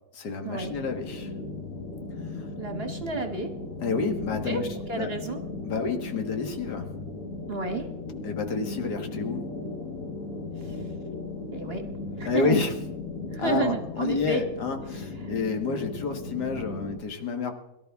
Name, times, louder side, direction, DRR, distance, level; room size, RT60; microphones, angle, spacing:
voice 1, 0.1-1.3 2.4-2.5 3.8-5.1 5.6-6.9 8.2-9.4 12.2-12.7 13.4-17.5, left 4 dB, 70° left, 5 dB, 2.0 m, -29 dB
sound 1, 0.6-17.0, left 3 dB, 55° left, 1.8 m, -37 dB
voice 2, 2.6-3.5 4.4-5.4 7.5-7.9 10.6-10.8 11.5-11.8 12.2-12.6 13.3-14.4 15.2-15.3, right 3 dB, 40° right, 5 dB, 1.2 m, -31 dB
22.0 x 12.5 x 3.5 m, 0.93 s
omnidirectional pair, 1.8 m